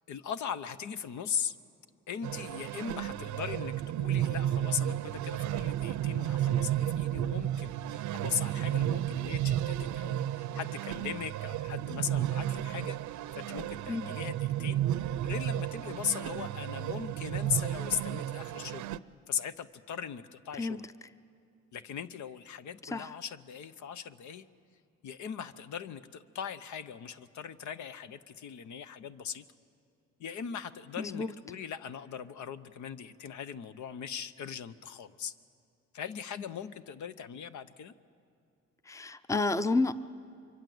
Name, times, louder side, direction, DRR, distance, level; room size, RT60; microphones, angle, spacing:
voice 1, 0.1-1.5 2.1-13.0 13.3-14.9 15.2-18.9 19.3-20.9 21.7-24.5 25.0-29.4 30.2-35.3 35.9-37.9, left 7 dB, 70° left, 13 dB, 0.9 m, -39 dB
sound 1, 2.2-19.0, right 12 dB, 75° right, 0.6 m, -33 dB
voice 2, 20.6-20.9 22.9-23.1 31.0-31.3 38.9-39.9, left 3 dB, 10° left, 14 dB, 0.6 m, -30 dB
24.5 x 23.5 x 7.9 m, 2.5 s
cardioid pair, 90°, 30 cm